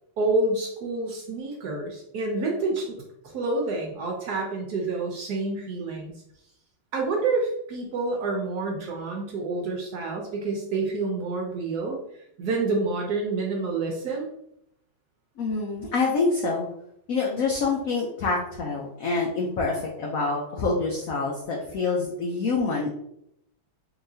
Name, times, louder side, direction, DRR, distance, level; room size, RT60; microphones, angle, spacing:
voice 1, 0.2-3.0 3.2-6.1 6.9-12.0 12.4-14.3, right 3 dB, 70° right, 0 dB, 1.0 m, -28 dB
voice 2, 15.4-16.7 17.1-22.9, left 4 dB, 90° left, -1 dB, 0.7 m, -26 dB
3.9 x 2.9 x 2.7 m, 0.76 s
omnidirectional pair, 2.2 m